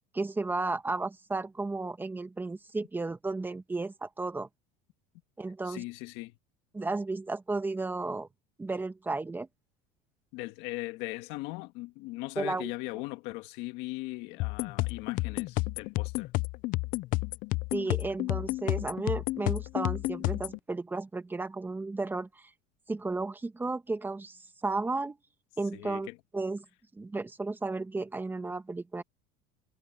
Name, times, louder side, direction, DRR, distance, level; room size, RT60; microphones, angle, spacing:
voice 1, 0.1-4.5 5.4-5.8 6.7-8.3 8.6-9.5 12.4-12.7 17.7-22.5 22.9-25.2 25.6-26.1 26.3-26.6 26.9-29.0, right 3 dB, 10° right, 1.4 m, -33 dB
voice 2, 5.6-6.4 10.3-16.3 25.7-26.2, left 21 dB, 65° left, 1.9 m, -39 dB
sound 1, 14.4-20.6, left 20 dB, 50° left, 0.5 m, -31 dB
supercardioid pair, 135°, 18 cm